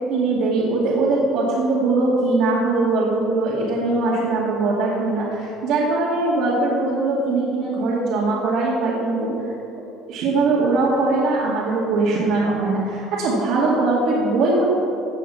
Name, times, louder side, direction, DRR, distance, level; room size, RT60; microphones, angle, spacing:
voice 1, 0.1-9.3 10.1-14.7, right 3 dB, 60° right, -6 dB, 2.3 m, -21 dB
15.5 x 8.2 x 5.7 m, 2.7 s
cardioid pair, 155°, 0 cm